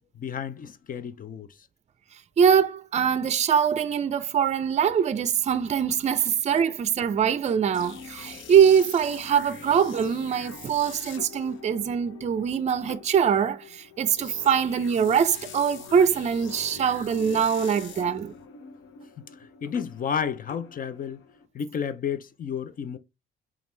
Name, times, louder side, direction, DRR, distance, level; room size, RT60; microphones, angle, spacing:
voice 1, 0.2-1.5 19.2-21.2 21.5-23.0, left 7 dB, 45° left, 0.5 m, -32 dB
voice 2, 2.4-18.3, right 7 dB, 35° right, 0.4 m, -23 dB
sound 1, 7.7-21.5, left 6 dB, 80° left, 0.8 m, -44 dB
5.1 x 2.4 x 3.1 m
cardioid pair, 90°, 20 cm